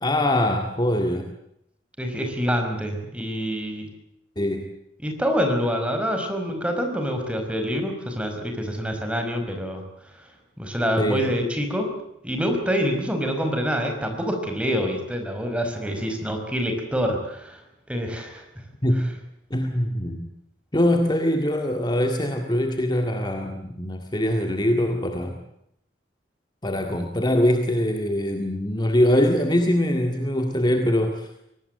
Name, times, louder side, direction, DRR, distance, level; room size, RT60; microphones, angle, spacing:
voice 1, 0.0-1.3 4.4-4.7 11.0-11.2 18.8-19.2 19.5-20.3 20.7-25.4 26.6-31.3, left 1 dB, 25° left, 4 dB, 2.0 m, -23 dB
voice 2, 2.0-3.9 5.0-9.8 10.2-10.3 10.6-11.9 12.2-17.6 17.9-18.4 19.0-19.1, equal, 5° right, 4 dB, 5.2 m, -26 dB
24.0 x 19.0 x 7.9 m, 0.78 s
head